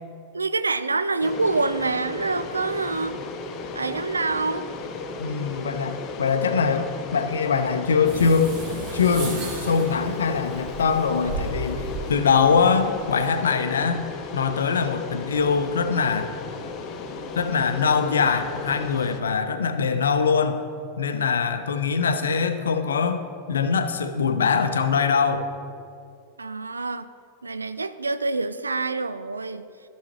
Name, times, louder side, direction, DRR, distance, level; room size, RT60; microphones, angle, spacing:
voice 1, 0.3-3.2 3.7-4.7 26.4-27.1 27.4-29.7, right 3 dB, 80° right, 13 dB, 0.3 m, -26 dB
sound 1, 1.2-19.2, left 3 dB, 35° left, 0.7 m, -35 dB
voice 2, 5.2-8.6 8.9-14.0 14.3-16.3 17.4-20.6 21.0-25.5, left 5 dB, 70° left, 8 dB, 0.5 m, -23 dB
sound 2, 8.0-13.2, right 2 dB, 40° right, 1.5 m, -35 dB
14.5 x 6.3 x 3.0 m, 2.4 s
figure-of-eight pair, 90°, 0 cm